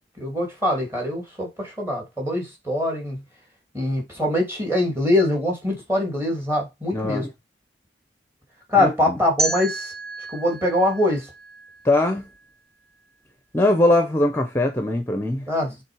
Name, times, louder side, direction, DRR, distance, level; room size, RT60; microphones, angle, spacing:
voice 1, 0.2-3.2 3.7-7.2 8.7-9.9 10.3-11.3 15.5-15.7, left 1 dB, 15° right, 2.7 m, -23 dB
voice 2, 6.9-7.3 8.8-9.2 11.8-12.3 13.5-15.5, left 1 dB, 15° left, 0.7 m, -21 dB
sound 1, 9.4-12.3, right 2 dB, 35° right, 2.0 m, -31 dB
7.3 x 3.7 x 4.8 m
head